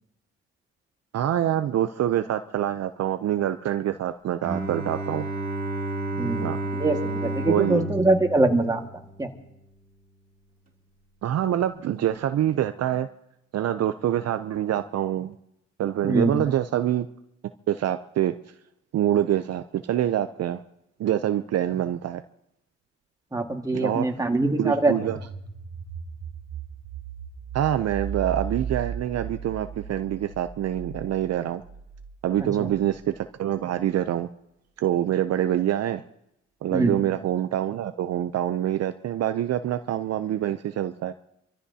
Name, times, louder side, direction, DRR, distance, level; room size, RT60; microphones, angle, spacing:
voice 1, 1.1-5.2 6.4-6.6 7.5-7.9 11.2-13.1 13.5-15.3 15.8-17.1 17.7-18.3 18.9-20.6 21.0-22.2 23.7-24.1 24.6-25.2 27.5-31.6 32.2-34.3 34.8-36.0 36.6-41.1, right 11 dB, 55° right, 9 dB, 0.6 m, -25 dB
Bowed string instrument, 4.4-9.3, right 2 dB, 30° right, 2.7 m, -31 dB
voice 2, 6.2-8.8 9.2-9.3 16.0-16.4 23.3-25.1 32.4-32.7 36.7-37.0, right 2 dB, 10° right, 3 dB, 1.8 m, -24 dB
sound 1, 24.5-33.2, right 6 dB, 75° right, 2.4 m, -37 dB
28.0 x 14.0 x 2.8 m, 0.81 s
cardioid pair, 90°, 30 cm